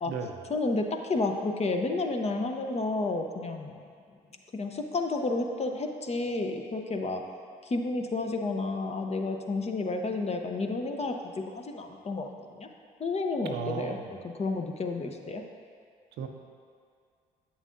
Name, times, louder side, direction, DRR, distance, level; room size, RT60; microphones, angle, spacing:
voice 1, 0.5-3.8 4.5-7.2 7.6-12.7 13.0-14.0 14.2-15.4, left 3 dB, 35° left, 4 dB, 0.7 m, -31 dB
voice 2, 13.4-14.1 16.2-16.3, right 5 dB, 70° right, 4 dB, 0.7 m, -35 dB
8.2 x 7.2 x 2.6 m, 2.2 s
hypercardioid pair, 50°, 19 cm